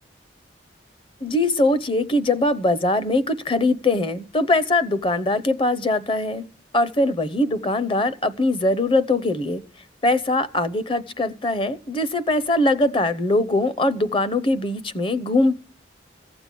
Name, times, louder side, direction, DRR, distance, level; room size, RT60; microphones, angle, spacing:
voice 1, 1.2-6.4 6.7-9.6 10.0-15.6, left 2 dB, 30° left, 0.8 m, -21 dB
15.0 x 7.9 x 8.4 m
head